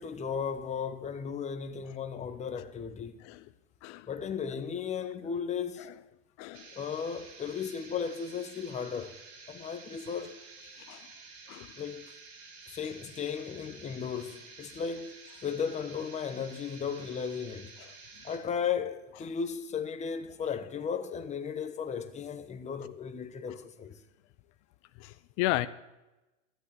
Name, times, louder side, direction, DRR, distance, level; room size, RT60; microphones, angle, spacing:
voice 1, 0.0-3.3 4.1-5.9 6.7-9.1 9.5-10.4 11.8-12.1 12.7-17.7 18.2-24.0, left 7 dB, 20° left, 1.0 m, -35 dB
voice 2, 6.4-6.7 10.8-11.1 11.5-11.7 25.0-25.7, left 17 dB, 40° left, 0.7 m, -34 dB
sound 1, 6.5-18.4, right 4 dB, 55° right, 3.0 m, -51 dB
13.5 x 8.4 x 6.9 m
hypercardioid pair, 115°, 38 cm